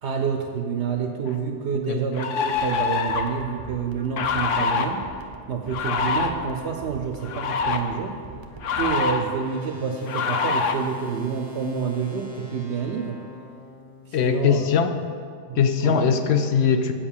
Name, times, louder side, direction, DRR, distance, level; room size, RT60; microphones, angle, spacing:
voice 1, 0.0-5.1 5.5-8.2 8.8-13.2 14.1-14.7 15.5-16.1, right 6 dB, 70° right, 4 dB, 0.9 m, -28 dB
sound 1, 1.3-1.4 2.1-3.4 4.2-4.9 5.7-6.3 7.2-7.8 8.6-9.2 10.1-10.7, left 5 dB, 90° left, 1.0 m, -25 dB
sound 2, 2.5-8.9, right 4 dB, 30° right, 0.6 m, -44 dB
sound 3, 7.5-14.6, left 2 dB, 30° left, 1.8 m, -47 dB
voice 2, 14.1-15.0 15.6-16.9, left 7 dB, 70° left, 8 dB, 0.8 m, -20 dB
8.8 x 5.3 x 7.1 m, 2.2 s
omnidirectional pair, 1.2 m